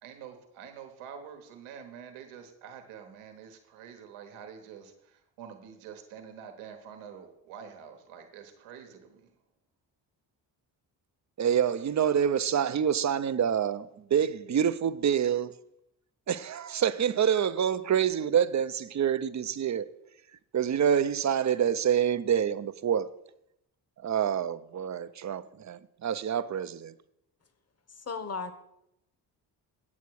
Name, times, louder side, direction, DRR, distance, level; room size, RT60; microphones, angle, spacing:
voice 1, 0.0-9.3, right 7 dB, 85° right, 1.2 m, -47 dB
voice 2, 11.4-15.5 16.3-19.9 20.5-23.1 24.0-26.9, right 8 dB, 35° right, 0.6 m, -27 dB
voice 3, 27.9-28.6, left 4 dB, 30° left, 1.2 m, -36 dB
8.4 x 8.3 x 4.7 m
hypercardioid pair, 45°, 48 cm